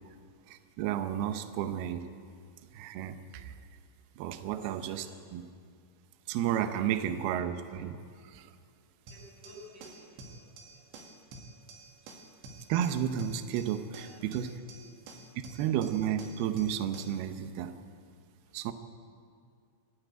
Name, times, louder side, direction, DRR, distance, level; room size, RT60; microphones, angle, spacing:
voice 1, 0.5-2.2 2.7-3.6 4.2-5.1 5.3-5.5 6.3-8.5 12.7-14.6 15.5-17.8 18.5-18.7, right 10 dB, 85° right, 9 dB, 2.2 m, -32 dB
voice 2, 4.3-5.2 6.7-6.9 9.1-11.1 13.9-14.2 14.7-14.8 15.3-15.4 18.4-18.5, equal, 45° right, -5 dB, 8.7 m, -55 dB
sound 1, 9.1-17.2, right 2 dB, 70° right, 3.8 m, -50 dB
25.5 x 11.5 x 9.3 m, 2.2 s
omnidirectional pair, 5.7 m